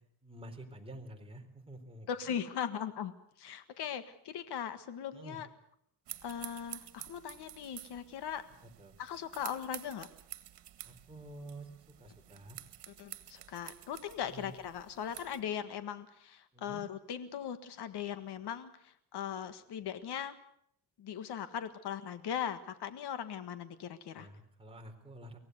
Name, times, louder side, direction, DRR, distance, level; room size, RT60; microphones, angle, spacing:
voice 1, 0.2-2.4 5.1-5.4 8.8-8.9 10.8-11.7 12.0-12.6 14.2-14.5 16.5-16.9 24.2-25.4, right 1 dB, 15° right, 2 dB, 4.2 m, -49 dB
voice 2, 2.1-5.5 6.2-8.4 9.0-10.1 12.9-20.3 21.0-24.3, left 8 dB, 70° left, 11 dB, 1.7 m, -39 dB
sound 1, 6.1-15.4, right 13 dB, 75° right, 2.0 m, -50 dB
24.0 x 18.0 x 8.0 m, 0.69 s
cardioid pair, 120°, 41 cm